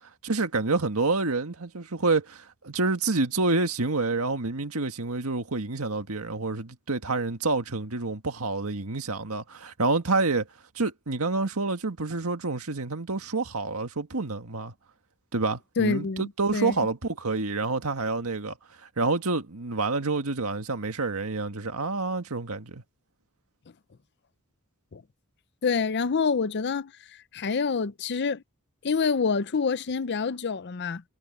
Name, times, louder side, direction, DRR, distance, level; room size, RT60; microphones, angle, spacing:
voice 1, 0.2-10.5 10.8-14.7 15.3-18.6 19.0-22.8, right 3 dB, 80° right, 1.8 m, -28 dB
voice 2, 15.8-16.8 24.9-25.0 25.6-26.9 27.3-28.4 28.8-31.0, left 5 dB, 50° left, 0.6 m, -27 dB
head